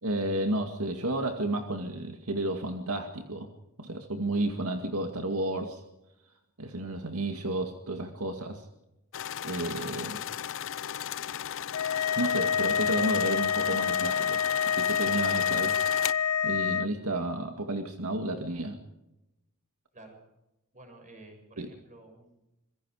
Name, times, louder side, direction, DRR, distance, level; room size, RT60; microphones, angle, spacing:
voice 1, 0.0-3.5 3.8-5.8 6.6-8.7 9.4-10.2 12.2-14.4 14.8-15.8 16.4-18.8 21.6-21.7, right 1 dB, 75° right, 5 dB, 2.1 m, -32 dB
sound 1, 9.1-16.1, left 10 dB, 65° left, 0.7 m, -36 dB
sound 2, 11.7-16.9, left 7 dB, 85° left, 0.9 m, -27 dB
voice 2, 20.7-22.5, right 2 dB, 35° right, 4 dB, 7.3 m, -52 dB
26.0 x 23.0 x 4.9 m, 0.93 s
head